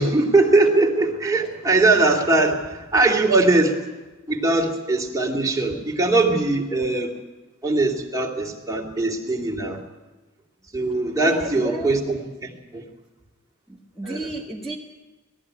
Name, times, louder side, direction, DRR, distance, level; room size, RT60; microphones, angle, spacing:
voice 1, 0.0-3.8 4.3-7.1 7.6-9.8 10.7-12.8 14.0-14.3, right 2 dB, 15° right, -1 dB, 2.6 m, -21 dB
voice 2, 11.2-11.9 13.7-14.8, right 2 dB, ahead, -5 dB, 1.5 m, -32 dB
19.5 x 14.0 x 9.5 m, 1.2 s
head